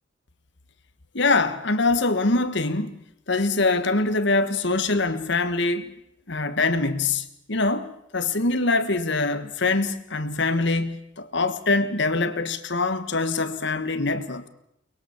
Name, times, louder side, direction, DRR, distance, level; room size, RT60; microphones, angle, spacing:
voice 1, 1.1-5.9 6.3-14.5, left 3 dB, 60° left, 1.4 m, -24 dB
22.5 x 21.0 x 7.1 m
head